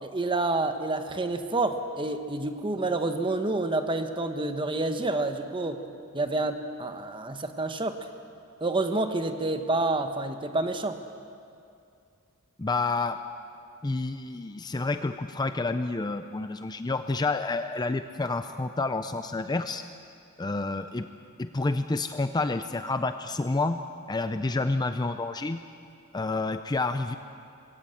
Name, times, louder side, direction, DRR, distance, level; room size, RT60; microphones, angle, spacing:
voice 1, 0.0-5.8 6.1-8.0 8.6-11.0, right 2 dB, 25° right, 7 dB, 1.1 m, -28 dB
voice 2, 12.6-13.2 13.8-19.8 20.4-21.1 21.4-23.8 24.1-25.6 26.1-27.1, left 3 dB, 20° left, 9 dB, 0.5 m, -29 dB
21.5 x 17.5 x 7.8 m, 2.5 s
head